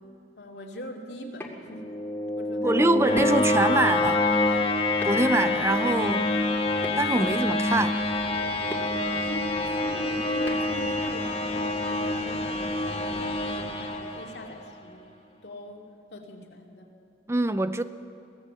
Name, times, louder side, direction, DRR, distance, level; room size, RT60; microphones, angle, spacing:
voice 1, 0.4-3.0 9.2-15.1 15.4-16.9, left 1 dB, 75° left, 2.6 m, -43 dB
sound 1, 1.1-1.5 3.2-3.5 5.0-5.3 6.8-7.3 8.7-8.8 10.4-10.7, left 1 dB, 10° left, 2.5 m, -38 dB
sound 2, 1.7-14.7, left 2 dB, 30° left, 1.7 m, -26 dB
voice 2, 2.6-4.2 5.0-6.3 7.0-8.0 17.3-17.8, right 2 dB, 15° right, 0.5 m, -24 dB
23.0 x 17.5 x 7.6 m
head